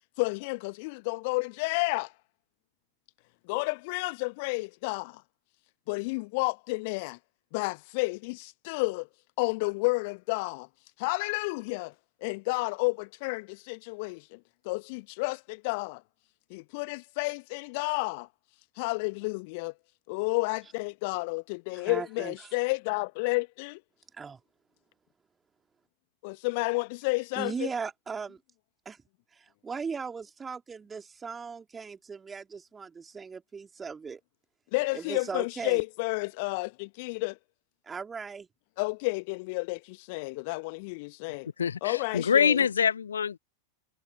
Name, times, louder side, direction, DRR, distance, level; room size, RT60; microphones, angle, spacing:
voice 1, 0.2-2.1 3.5-5.2 5.9-7.2 7.5-9.1 9.4-10.7 11.0-11.9 12.2-14.4 14.6-16.0 16.5-18.3 18.8-19.7 20.1-23.8 26.2-27.7 34.7-37.4 38.8-41.5 41.8-42.6, left 28 dB, 45° left, 1.2 m, -31 dB
voice 2, 21.8-22.3 24.2-24.4 27.4-28.4 28.8-29.0 29.3-34.2 34.9-35.8 37.9-38.5, right 5 dB, 15° right, 3.3 m, -38 dB
voice 3, 41.6-43.4, left 7 dB, 70° left, 0.9 m, -25 dB
figure-of-eight pair, 90°, 0 cm